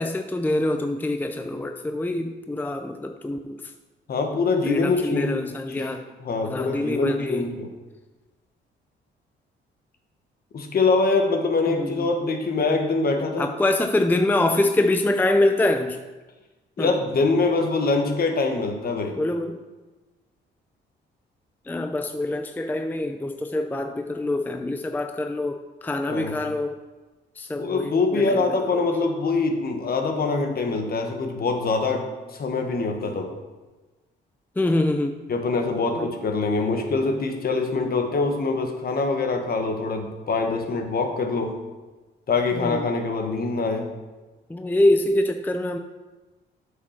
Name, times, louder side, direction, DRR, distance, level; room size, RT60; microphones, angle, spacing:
voice 1, 0.0-3.6 4.7-6.0 6.4-7.5 11.7-12.1 13.4-16.0 16.8-16.9 19.2-19.6 21.7-26.8 27.4-28.8 34.6-35.2 35.9-36.1 42.6-42.9 44.5-45.8, left 1 dB, 10° left, 6 dB, 0.5 m, -25 dB
voice 2, 4.1-7.7 10.5-13.5 16.8-19.2 26.0-26.4 27.6-33.3 35.3-41.5 42.3-43.9, left 3 dB, 50° left, 4 dB, 1.4 m, -24 dB
8.3 x 5.0 x 5.8 m, 1.2 s
cardioid pair, 90°, 20 cm